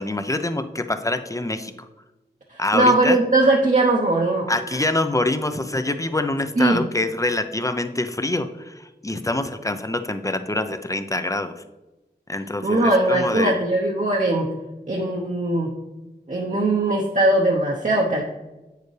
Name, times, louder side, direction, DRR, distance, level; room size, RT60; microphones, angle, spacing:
voice 1, 0.0-1.9 2.6-3.2 4.5-11.6 12.3-13.6, left 2 dB, 20° left, 9 dB, 0.5 m, -25 dB
voice 2, 2.5-4.5 6.6-6.8 12.6-14.5 14.9-15.7 16.3-18.2, right 2 dB, 45° right, -2 dB, 0.9 m, -20 dB
8.2 x 6.6 x 3.3 m, 1.1 s
wide cardioid pair, 70°, 18 cm